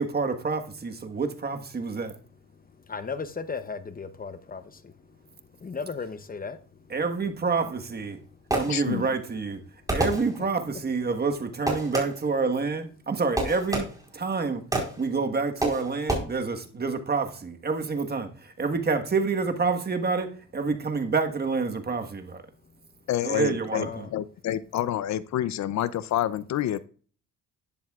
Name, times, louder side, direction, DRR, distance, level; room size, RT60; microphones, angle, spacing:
voice 1, 0.0-2.2 6.9-8.2 8.6-9.6 9.9-13.9 14.1-14.6 15.0-22.4 23.2-24.0, right 4 dB, 30° right, 1.4 m, -28 dB
voice 2, 2.9-4.6 5.6-6.6 23.7-24.1, left 5 dB, 30° left, 0.8 m, -35 dB
Fireworks, 8.0-9.1 9.9-10.7 11.7-12.4 13.4-14.2 14.7-15.1 15.6-16.2, right 1 dB, 10° right, 4.2 m, -29 dB
voice 3, 8.7-9.0 23.1-26.8, left 12 dB, 65° left, 0.6 m, -28 dB
12.0 x 10.0 x 2.4 m
cardioid pair, 90°, 30 cm